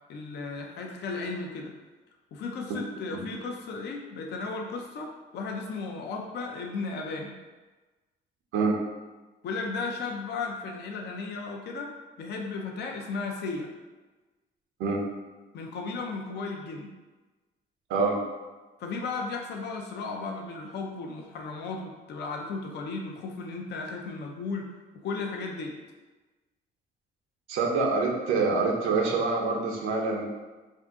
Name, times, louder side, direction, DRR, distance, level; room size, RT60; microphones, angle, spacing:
voice 1, 0.1-1.7 2.3-7.4 9.4-11.9 12.2-13.7 15.5-16.9 18.8-24.7 24.9-25.8, left 4 dB, 60° left, 2 dB, 0.5 m, -35 dB
voice 2, 17.9-18.2 27.5-30.2, right 4 dB, 85° right, -1 dB, 0.6 m, -26 dB
2.7 x 2.5 x 3.4 m, 1.2 s
cardioid pair, 90°, 20 cm